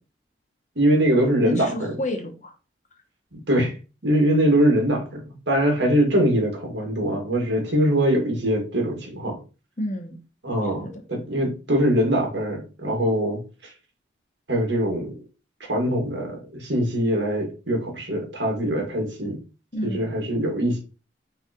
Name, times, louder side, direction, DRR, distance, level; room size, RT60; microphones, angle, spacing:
voice 1, 0.8-1.9 3.5-3.7 4.0-9.4 10.4-10.8 11.1-13.4 14.5-15.2 15.7-19.4 19.8-20.8, right 1 dB, 70° right, 1 dB, 1.9 m, -22 dB
voice 2, 1.4-2.5 9.8-10.2 10.8-11.0 19.7-20.1, left 1 dB, 40° left, 5 dB, 0.8 m, -30 dB
5.9 x 3.1 x 2.9 m, 0.31 s
head